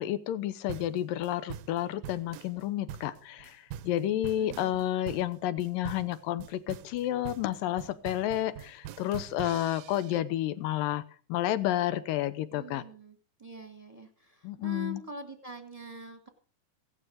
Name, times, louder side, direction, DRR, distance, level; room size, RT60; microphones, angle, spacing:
voice 1, 0.0-11.0 11.3-12.8 14.4-15.0, left 13 dB, 90° left, 14 dB, 2.6 m, -31 dB
sound 1, 0.7-10.2, right 10 dB, 90° right, 2.5 m, -44 dB
voice 2, 4.4-4.8 12.5-16.3, right 1 dB, 20° right, 5 dB, 1.0 m, -45 dB
17.0 x 12.0 x 5.0 m, 0.41 s
omnidirectional pair, 3.9 m